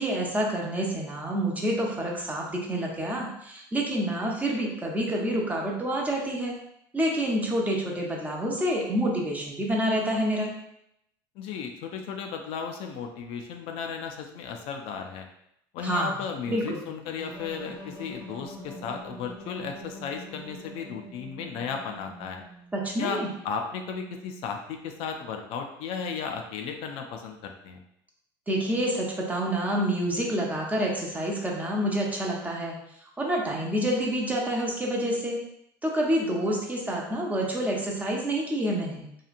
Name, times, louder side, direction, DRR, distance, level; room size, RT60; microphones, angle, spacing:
voice 1, 0.0-6.6 6.9-10.5 15.8-16.2 16.5-16.9 22.7-23.3 28.5-32.7 33.2-35.4 35.8-39.0, right 1 dB, 15° right, -2 dB, 0.7 m, -28 dB
voice 2, 11.4-15.3 15.7-22.4 23.0-27.8, left 6 dB, 65° left, 4 dB, 0.4 m, -35 dB
sound 1, 17.1-22.8, equal, 90° right, 1.2 m, -44 dB
2.8 x 2.3 x 2.5 m, 0.76 s
supercardioid pair, 100°, 11 cm